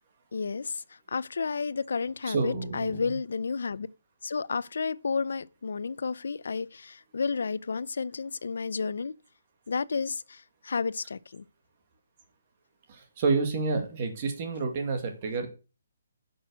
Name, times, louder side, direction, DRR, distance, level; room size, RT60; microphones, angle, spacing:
voice 1, 0.3-0.8 1.1-3.9 4.2-9.1 9.7-11.4, left 5 dB, 65° left, 0.6 m, -31 dB
voice 2, 2.3-3.0 12.9-15.5, right 4 dB, 25° right, 2.0 m, -29 dB
10.0 x 6.3 x 6.3 m
hypercardioid pair, 180°, 0 cm